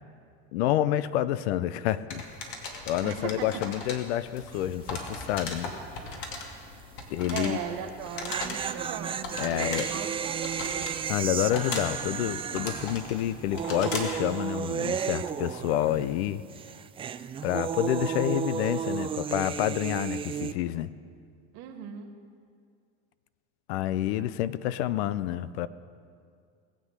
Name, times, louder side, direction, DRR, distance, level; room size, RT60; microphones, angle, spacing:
voice 1, 0.5-2.2 2.9-5.7 7.1-7.6 9.4-9.9 11.1-16.4 17.4-20.9 23.7-25.7, left 12 dB, 85° left, 16 dB, 0.6 m, -28 dB
sound 1, 2.1-14.2, left 3 dB, 65° left, 2.5 m, -39 dB
voice 2, 3.0-3.5 7.3-10.9 21.5-22.1 24.2-24.3, right 8 dB, 65° right, 5 dB, 1.9 m, -38 dB
sound 2, 4.5-4.9 5.1-5.2 7.9-16.2 16.5-20.5, right 8 dB, 20° right, 0.3 m, -33 dB
20.5 x 7.7 x 6.6 m, 2.3 s
supercardioid pair, 115°, 32 cm